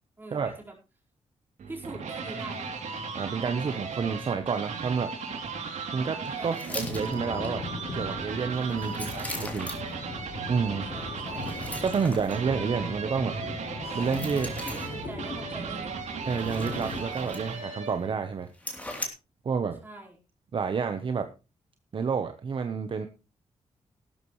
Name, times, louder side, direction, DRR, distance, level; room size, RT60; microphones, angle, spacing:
voice 1, 0.2-0.8 1.7-2.7 6.4-6.9 10.9-11.5 14.7-15.9 19.8-20.2, right 2 dB, 15° right, -2 dB, 4.7 m, -44 dB
sound 1, 1.6-18.1, right 5 dB, 80° right, 3.2 m, -36 dB
voice 2, 3.1-5.1 5.9-7.6 7.9-9.7 10.5-10.9 11.8-13.3 13.9-14.5 16.2-18.5 19.4-19.8 20.5-21.3 21.9-23.1, right 5 dB, 45° right, 8 dB, 1.0 m, -29 dB
sound 2, 6.5-7.5 8.5-9.9 11.3-12.4 14.0-15.0 16.3-17.7 18.0-18.1 18.5-19.1, left 1 dB, 10° left, 3.4 m, -40 dB
sound 3, 6.8-17.3, left 3 dB, 55° left, 5.9 m, -39 dB
15.5 x 12.5 x 3.2 m, 0.30 s
wide cardioid pair, 140°, 12 cm